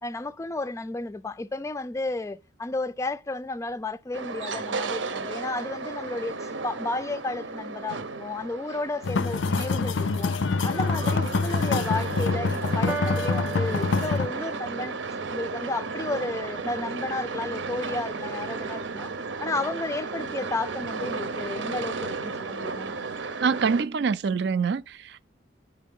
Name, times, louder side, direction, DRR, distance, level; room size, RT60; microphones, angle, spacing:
voice 1, 0.0-6.3 6.6-10.3 10.6-15.0 15.3-19.1 19.4-22.9, left 2 dB, 15° left, 0.3 m, -32 dB
sound 1, 4.1-23.8, right 4 dB, 85° right, 0.9 m, -34 dB
sound 2, 9.0-14.3, left 4 dB, 85° left, 0.5 m, -26 dB
Piano, 12.9-14.8, right 3 dB, 10° right, 0.8 m, -35 dB
voice 2, 23.4-25.3, right 5 dB, 60° right, 0.4 m, -25 dB
10.5 x 4.5 x 5.4 m
head